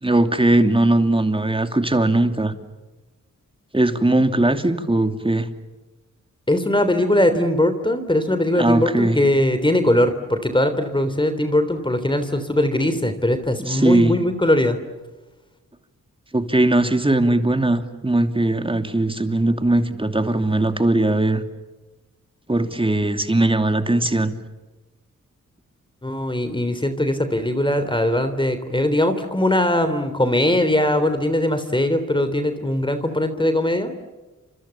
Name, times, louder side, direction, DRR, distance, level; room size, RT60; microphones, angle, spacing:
voice 1, 0.0-2.5 3.7-5.5 8.5-9.2 13.7-14.2 16.3-21.4 22.5-24.3, right 2 dB, 15° right, 7 dB, 2.9 m, -19 dB
voice 2, 6.5-14.8 26.0-33.9, left 1 dB, 15° left, 9 dB, 3.4 m, -20 dB
30.0 x 27.0 x 7.2 m, 1.1 s
wide cardioid pair, 85°, 32 cm